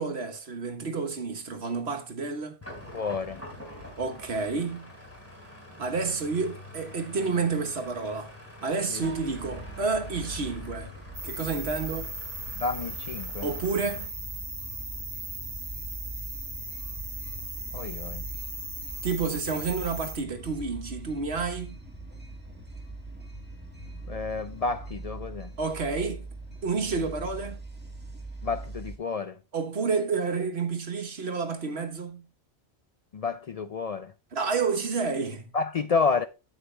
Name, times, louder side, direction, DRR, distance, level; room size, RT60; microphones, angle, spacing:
voice 1, 0.0-2.6 4.0-4.9 5.8-8.3 8.6-10.9 11.2-12.1 13.4-14.1 19.0-21.8 25.6-26.3 26.6-27.6 29.5-32.2 34.3-35.5, right 4 dB, 60° right, 1.4 m, -30 dB
sound 1, 2.6-14.0, left 1 dB, 10° left, 3.2 m, -46 dB
voice 2, 2.9-3.4 8.9-9.0 12.6-13.5 17.7-18.2 24.1-25.5 28.4-29.4 33.1-34.1 35.5-36.3, left 4 dB, 75° left, 0.3 m, -30 dB
sound 2, 9.0-29.0, right 2 dB, 10° right, 1.8 m, -42 dB
sound 3, 11.1-20.1, right 2 dB, 45° right, 3.2 m, -38 dB
9.5 x 7.5 x 3.2 m
omnidirectional pair, 1.2 m